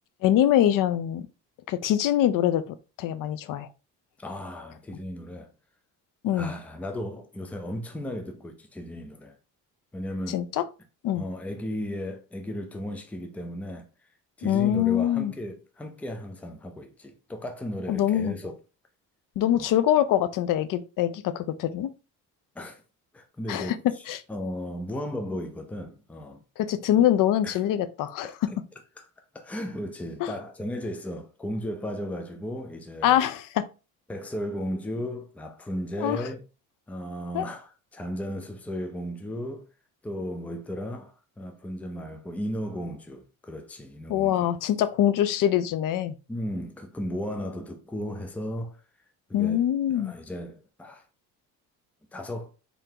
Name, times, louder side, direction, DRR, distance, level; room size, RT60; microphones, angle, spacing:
voice 1, 0.2-1.3 1.7-3.7 6.2-6.5 10.3-10.6 11.0-11.2 14.4-15.3 17.9-18.4 19.4-21.9 23.5-23.8 24.1-24.2 26.6-28.3 30.2-30.3 33.0-33.6 36.0-36.2 37.3-37.5 44.1-46.1 49.3-50.2, left 11 dB, 65° left, 0.5 m, -24 dB
voice 2, 4.2-5.5 6.3-9.4 9.9-10.4 11.1-13.9 14.4-18.6 19.6-19.7 22.6-22.8 23.1-23.8 24.1-26.4 27.0-27.1 27.4-27.6 28.2-28.6 29.0-29.1 29.3-33.2 34.1-36.4 36.9-39.7 40.0-44.5 46.3-48.8 49.3-51.0 52.1-52.5, equal, 5° left, 0.5 m, -35 dB
3.8 x 3.4 x 2.8 m
cardioid pair, 130°, 34 cm